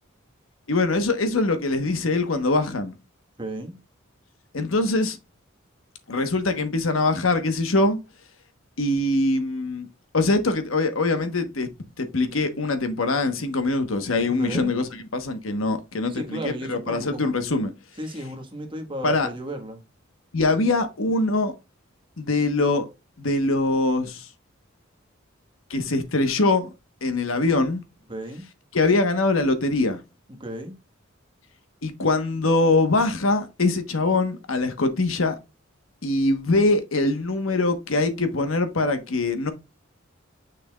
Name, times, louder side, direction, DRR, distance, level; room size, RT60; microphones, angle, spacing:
voice 1, 0.7-3.0 4.5-5.2 6.1-8.0 8.8-9.9 10.1-11.7 12.0-14.8 15.1-17.7 19.0-19.3 20.3-21.5 22.2-22.9 23.2-24.3 25.7-26.7 27.0-27.8 28.7-30.0 31.8-35.4 36.0-39.5, left 2 dB, 80° left, 1.2 m, -23 dB
voice 2, 3.4-3.8 14.2-14.7 16.1-17.3 18.0-19.8 28.1-28.4 30.3-30.7, right 1 dB, 25° right, 1.4 m, -34 dB
6.7 x 6.2 x 2.3 m
head